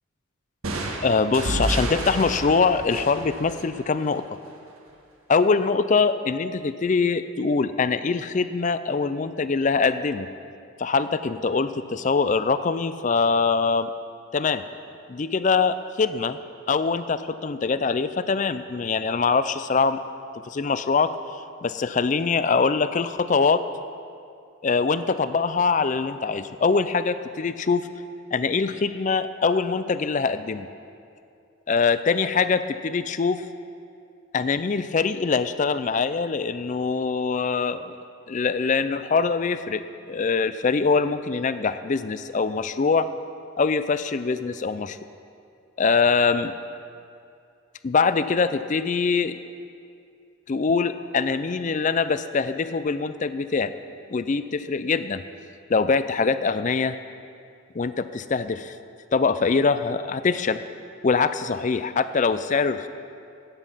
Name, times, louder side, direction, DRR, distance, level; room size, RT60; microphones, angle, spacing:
sound 1, 0.6-4.3, right 1 dB, 85° right, 1.6 m, -30 dB
voice 1, 1.0-4.2 5.3-10.3 10.8-13.9 14.3-14.6 15.1-16.4 16.7-20.0 20.4-23.6 24.6-27.9 28.3-30.7 31.7-33.4 34.3-38.0 38.3-43.1 43.6-45.0 45.8-46.5 47.8-49.4 50.5-53.7 54.1-55.2 55.7-57.0 57.7-58.8 59.1-60.6 61.0-62.9, left 4 dB, 35° left, 12 dB, 0.4 m, -23 dB
13.0 x 9.2 x 5.6 m, 2.5 s
head